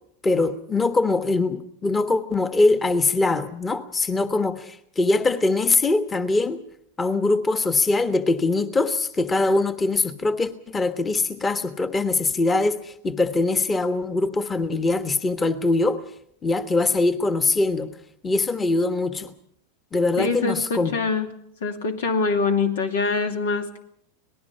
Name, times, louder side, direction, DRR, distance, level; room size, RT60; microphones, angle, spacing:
voice 1, 0.2-6.6 7.0-16.0 16.4-17.9 18.2-19.3 19.9-20.9, left 3 dB, 20° left, 9 dB, 1.3 m, -22 dB
voice 2, 20.2-21.3 21.6-23.8, left 4 dB, 90° left, 5 dB, 2.6 m, -24 dB
26.0 x 19.0 x 5.6 m, 0.71 s
supercardioid pair, 120°, 0 cm